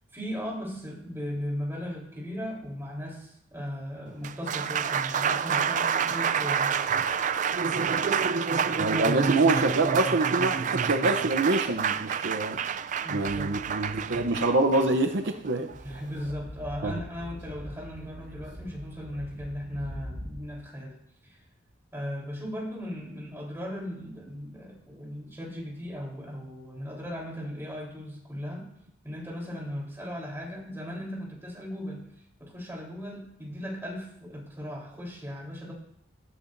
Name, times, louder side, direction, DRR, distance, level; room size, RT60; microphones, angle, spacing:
voice 1, 0.1-6.8 13.0-13.8 15.8-21.0 21.2-21.4 21.9-28.7 29.0-32.1 32.4-35.7, equal, 10° right, -3 dB, 3.7 m, -37 dB
Applause, 4.1-16.3, right 6 dB, 40° right, 0.3 m, -28 dB
voice 2, 8.8-12.6 13.1-15.7 16.8-17.0, right 2 dB, 65° right, 7 dB, 0.7 m, -26 dB
Speech / Wind, 15.7-20.6, equal, 80° right, 4.9 m, -43 dB
17.0 x 13.5 x 2.6 m, 0.72 s
head